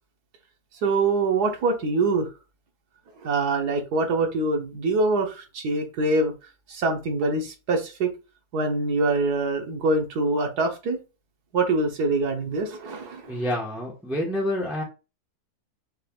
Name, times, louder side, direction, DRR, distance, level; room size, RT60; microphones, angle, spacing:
voice 1, 0.8-2.3 3.2-6.3 6.7-8.1 8.5-11.0 11.5-13.4, right 3 dB, 75° right, 3 dB, 1.6 m, -24 dB
voice 2, 13.3-14.8, left 1 dB, ahead, -3 dB, 1.1 m, -28 dB
6.5 x 3.4 x 2.4 m, 0.30 s
omnidirectional pair, 1.7 m